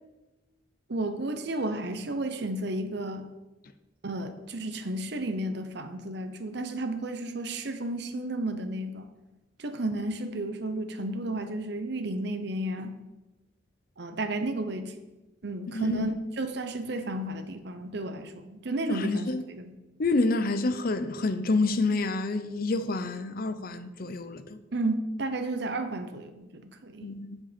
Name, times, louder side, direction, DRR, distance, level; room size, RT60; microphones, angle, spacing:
voice 1, 0.9-3.3 4.0-9.1 9.6-13.0 14.0-14.9 15.4-19.7 24.7-27.1, right 2 dB, 60° right, 0.8 m, -32 dB
voice 2, 15.7-16.1 18.9-19.4 20.0-24.6 27.0-27.4, left 3 dB, 50° left, 0.6 m, -28 dB
7.5 x 7.4 x 5.1 m
head